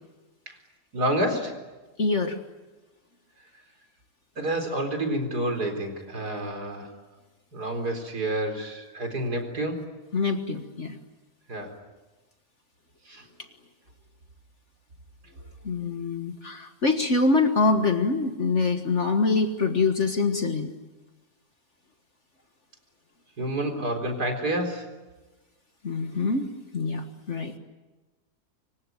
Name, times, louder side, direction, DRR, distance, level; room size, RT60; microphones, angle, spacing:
voice 1, 0.9-1.6 4.4-6.9 7.5-9.9 11.5-11.7 13.1-13.2 23.4-24.9, right 1 dB, 85° right, 4 dB, 4.7 m, -29 dB
voice 2, 2.0-2.4 10.1-11.0 15.6-20.7 25.8-27.5, left 3 dB, 50° left, 6 dB, 1.8 m, -25 dB
26.5 x 24.0 x 9.3 m, 1.2 s
omnidirectional pair, 1.7 m